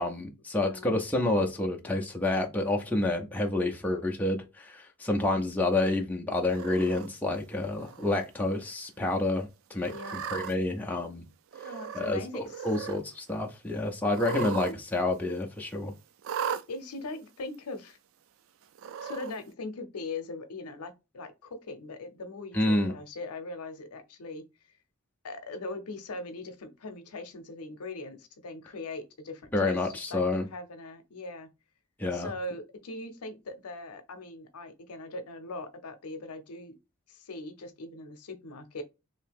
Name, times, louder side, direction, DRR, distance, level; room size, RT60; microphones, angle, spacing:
voice 1, 0.0-9.9 10.3-11.2 11.9-15.9 22.5-22.9 29.5-30.5 32.0-32.3, left 2 dB, 5° left, 0.4 m, -29 dB
voice 2, 0.6-0.9 9.9-10.1 11.6-12.7 14.3-14.7 16.7-18.0 19.0-24.4 25.2-31.5 32.1-36.7 37.1-38.8, left 2 dB, 85° left, 0.6 m, -40 dB
Cat, 6.5-7.1 7.8-8.2 8.6-8.7 9.8-10.5 11.5-12.2 12.4-13.0 14.1-14.7 15.0-15.1 16.2-16.6 17.5-17.6 18.8-19.3, right 8 dB, 60° right, 0.3 m, -36 dB
2.8 x 2.7 x 3.4 m
head